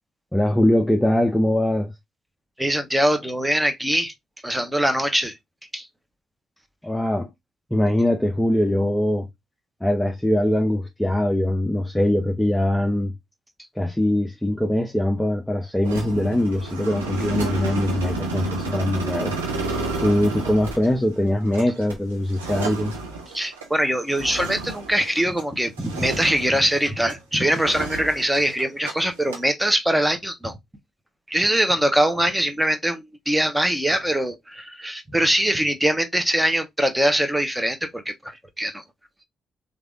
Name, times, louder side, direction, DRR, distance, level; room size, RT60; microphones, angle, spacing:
voice 1, 0.3-1.9 6.8-7.3 7.7-9.3 9.8-13.1 13.8-19.3 20.0-22.9, left 1 dB, 10° left, 0.6 m, -22 dB
voice 2, 2.6-4.1 4.4-5.3 5.7-5.9 23.3-30.6 31.3-38.3 38.6-38.8, right 1 dB, 10° right, 1.0 m, -22 dB
sound 1, 15.8-25.5 25.8-27.2 27.5-28.9 29.2-29.5, right 3 dB, 90° right, 0.7 m, -31 dB
3.3 x 2.6 x 2.3 m
hypercardioid pair, 40°, 0 cm